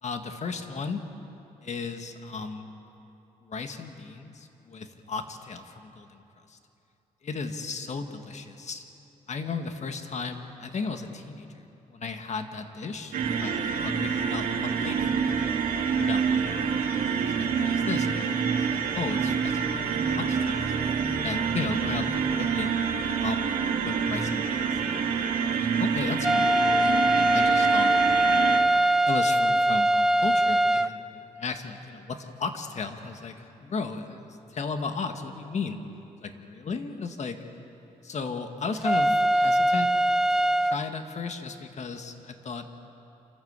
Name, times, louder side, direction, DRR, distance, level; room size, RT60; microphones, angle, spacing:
voice 1, 0.0-1.1 1.6-2.7 3.4-6.2 6.5-6.6 7.2-8.9 9.3-15.5 15.9-16.6 16.9-20.7 21.2-22.8 23.1-25.0 25.4-27.9 29.0-31.0 31.4-35.8 36.2-37.4 38.0-39.9 40.3-42.7, left 4 dB, 55° left, 6 dB, 1.8 m, -35 dB
sound 1, 13.1-28.6, right 6 dB, 85° right, 2.2 m, -27 dB
sound 2, 26.2-30.9 38.8-40.8, right 1 dB, 5° right, 0.6 m, -22 dB
28.5 x 13.5 x 8.2 m, 2.9 s
cardioid pair, 70°, 14 cm